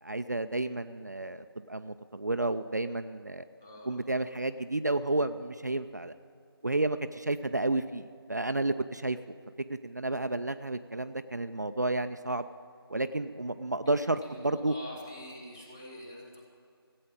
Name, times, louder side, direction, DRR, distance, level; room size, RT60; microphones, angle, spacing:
voice 1, 0.0-3.5 3.9-6.1 6.6-9.2 9.7-12.5 12.9-14.7, right 2 dB, 45° right, 9 dB, 0.4 m, -31 dB
voice 2, 3.6-4.0 13.9-14.0 14.2-16.4, left 1 dB, 5° left, -2 dB, 0.8 m, -46 dB
15.0 x 8.6 x 9.0 m, 2.4 s
figure-of-eight pair, 170°, 13 cm